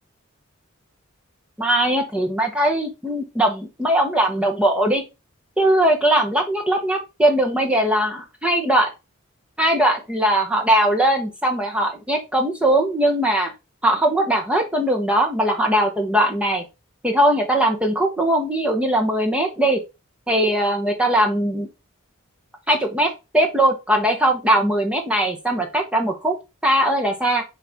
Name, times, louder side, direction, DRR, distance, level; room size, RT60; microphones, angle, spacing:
voice 1, 1.6-5.0 5.6-8.9 9.6-13.5 13.8-16.6 17.0-19.8 20.3-21.7 22.7-26.3 26.6-27.4, right 1 dB, 5° right, 2 dB, 1.0 m, -20 dB
6.6 x 4.1 x 3.6 m, 0.26 s
head